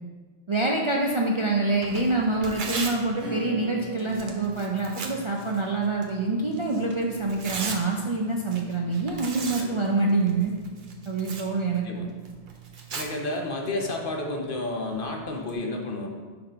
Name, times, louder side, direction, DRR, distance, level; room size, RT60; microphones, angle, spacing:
voice 1, 0.5-10.6 11.1-12.1, right 3 dB, 40° right, -1 dB, 0.5 m, -26 dB
Tearing, 1.7-15.5, right 5 dB, 55° right, 0.8 m, -40 dB
Acoustic guitar / Strum, 3.2-7.5, right 3 dB, 70° right, 1.7 m, -43 dB
voice 2, 12.9-16.1, left 2 dB, 55° left, 1 dB, 1.0 m, -31 dB
5.7 x 3.8 x 5.6 m, 1.4 s
omnidirectional pair, 1.1 m